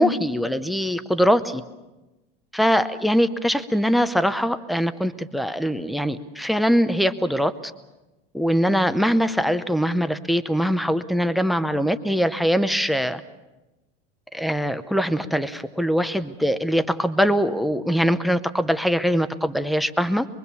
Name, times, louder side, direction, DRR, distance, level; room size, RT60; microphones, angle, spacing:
voice 1, 0.0-1.6 2.5-7.5 8.3-13.2 14.3-20.3, equal, ahead, 10 dB, 0.7 m, -22 dB
23.5 x 23.5 x 7.0 m, 1.1 s
supercardioid pair, 150°, 31 cm